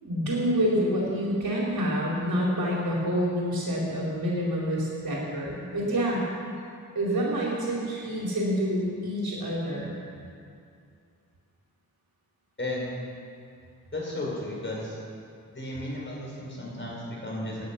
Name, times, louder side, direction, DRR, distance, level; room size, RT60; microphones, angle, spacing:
voice 1, 0.0-6.2 6.9-10.0, equal, 85° right, -5 dB, 4.3 m, -27 dB
voice 2, 12.6-12.9 13.9-15.0 15.5-17.6, left 1 dB, 35° left, -3 dB, 4.7 m, -34 dB
18.0 x 10.0 x 6.0 m, 2.4 s
wide cardioid pair, 90°, 35 cm